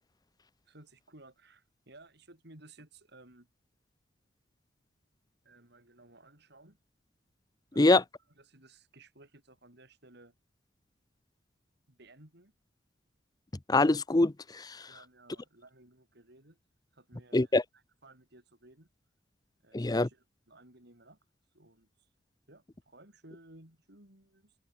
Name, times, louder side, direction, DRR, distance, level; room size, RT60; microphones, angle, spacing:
voice 1, 0.6-3.5 5.4-6.8 7.7-8.1 8.4-10.3 11.9-12.5 14.9-16.6 16.9-18.9 19.6-21.2 21.5-22.1 22.5-24.6, right 2 dB, 60° right, 5.8 m, -57 dB
voice 2, 13.7-14.8 17.3-17.6 19.7-20.1, left 2 dB, 20° left, 0.6 m, -24 dB
head